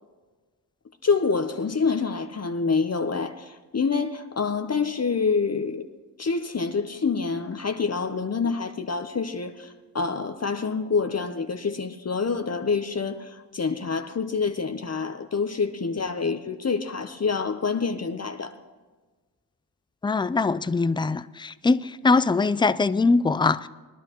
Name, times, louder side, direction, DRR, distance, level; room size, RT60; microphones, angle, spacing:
voice 1, 1.0-5.8 6.2-18.6, left 5 dB, 40° left, 0.8 m, -27 dB
voice 2, 20.0-23.7, left 3 dB, 10° left, 0.4 m, -22 dB
20.5 x 11.0 x 3.0 m
cardioid pair, 50°, 40 cm